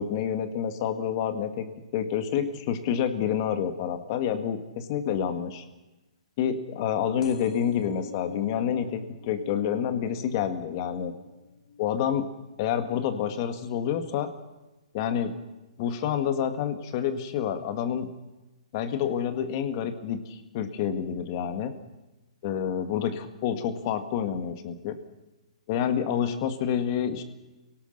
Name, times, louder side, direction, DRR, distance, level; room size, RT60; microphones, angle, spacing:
voice 1, 0.0-1.7 1.9-5.6 6.4-11.1 11.8-12.3 12.6-14.3 14.9-15.3 15.8-18.1 18.7-21.7 22.4-25.0 25.7-27.2, left 8 dB, 30° left, 9 dB, 1.9 m, -28 dB
sound 1, 7.2-14.4 14.9-15.4 16.3-16.4 16.6-16.7 16.9-17.0, left 5 dB, 60° left, 3.1 m, -47 dB
28.5 x 18.0 x 6.7 m, 1.1 s
hypercardioid pair, 165°, 4 cm